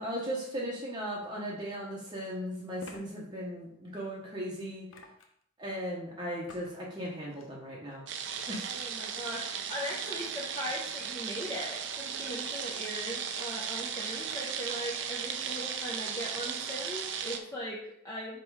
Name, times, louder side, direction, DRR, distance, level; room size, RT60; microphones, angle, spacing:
voice 1, 0.0-4.9 5.6-8.1 8.5-8.8, equal, 20° right, -4 dB, 1.0 m, -37 dB
sound 1, 1.3-1.4 2.8-3.0 4.9-5.4 6.5-6.8 7.2-7.5 8.3-8.4, left 3 dB, 80° left, 0.9 m, -49 dB
sound 2, 8.1-17.4, right 7 dB, 65° right, 0.7 m, -36 dB
voice 2, 8.7-18.4, equal, 15° left, -6 dB, 0.9 m, -39 dB
5.4 x 4.2 x 4.8 m, 0.72 s
head